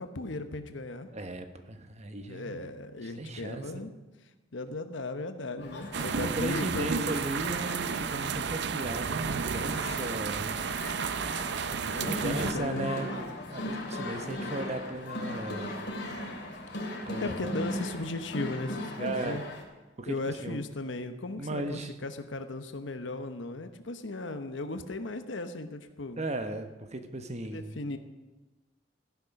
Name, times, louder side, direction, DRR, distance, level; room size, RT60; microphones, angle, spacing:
voice 1, 0.0-1.1 2.2-3.9 4.5-6.9 11.9-12.9 14.1-14.6 17.2-19.4 20.1-26.2 27.4-28.0, left 2 dB, 90° left, 8 dB, 1.0 m, -37 dB
voice 2, 1.1-2.7 3.0-3.9 6.0-10.6 11.7-13.1 13.5-15.8 17.1-17.6 19.0-19.4 20.0-20.6 21.4-21.9 26.2-27.9, right 2 dB, 35° right, 8 dB, 1.1 m, -36 dB
sound 1, 5.6-19.6, left 1 dB, 65° left, 3.0 m, -38 dB
sound 2, 5.9-12.5, right 6 dB, 65° right, 0.5 m, -32 dB
15.0 x 10.5 x 5.9 m, 1.2 s
head